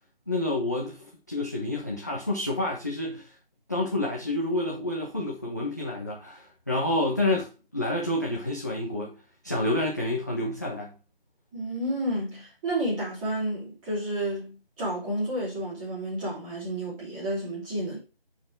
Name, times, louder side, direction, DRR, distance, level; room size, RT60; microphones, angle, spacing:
voice 1, 0.3-3.3 3.7-9.1 9.4-10.9, left 1 dB, 20° left, 0.6 m, -29 dB
voice 2, 11.5-18.0, right 1 dB, 10° right, 3.3 m, -31 dB
9.2 x 4.5 x 3.6 m
figure-of-eight pair, 160°, 29 cm